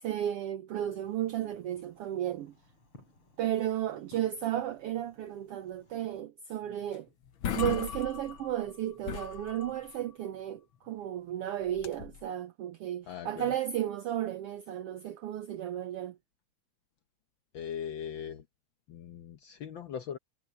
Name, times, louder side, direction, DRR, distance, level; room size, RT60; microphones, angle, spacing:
voice 1, 0.0-2.5 3.4-7.1 7.5-16.2, right 11 dB, 80° right, 1.3 m, -34 dB
Fireworks, 0.7-6.2, left 2 dB, 40° left, 8.5 m, -61 dB
sound 1, 6.9-7.0 7.3-8.7 9.0-10.0 11.7-12.3, left 8 dB, 60° left, 1.3 m, -37 dB
voice 2, 13.1-13.5 17.5-18.4 18.9-20.2, left 8 dB, 80° left, 1.0 m, -40 dB
omnidirectional pair, 3.5 m